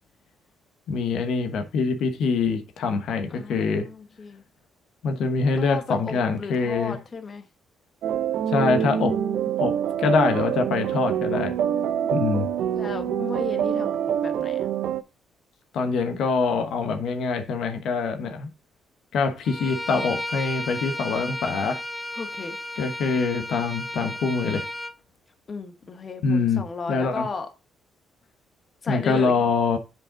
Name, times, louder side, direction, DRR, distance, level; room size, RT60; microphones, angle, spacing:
voice 1, 0.9-3.9 5.0-7.0 8.5-9.2 9.6-11.6 12.1-12.5 15.7-18.5 19.1-21.8 22.8-24.7 26.2-27.3 28.9-29.8, left 4 dB, 75° left, 1.2 m, -24 dB
voice 2, 3.3-4.4 5.6-7.4 12.0-12.4 12.7-14.7 22.2-22.6 25.5-27.5 28.8-29.3, left 4 dB, 40° left, 0.9 m, -35 dB
sound 1, 8.0-15.0, right 9 dB, 75° right, 0.6 m, -25 dB
Bowed string instrument, 19.4-24.9, left 1 dB, 5° left, 0.5 m, -33 dB
7.5 x 5.2 x 3.8 m
cardioid pair, 90°, 0 cm